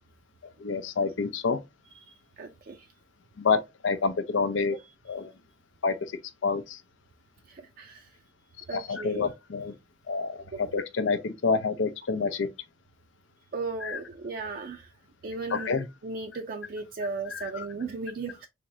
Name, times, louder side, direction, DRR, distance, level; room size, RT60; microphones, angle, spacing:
voice 1, 0.4-1.6 3.4-4.8 5.0-5.3 5.8-6.1 6.4-6.8 8.7-9.7 10.1-12.5 13.8-14.0 15.5-15.9 17.3-17.7, left 4 dB, 85° left, 0.5 m, -28 dB
voice 2, 2.4-2.8 7.8-8.1 8.7-9.3 10.5-10.6 13.5-14.9 15.2-15.7 16.0-18.5, right 4 dB, 50° right, 0.4 m, -36 dB
3.4 x 3.0 x 2.6 m
head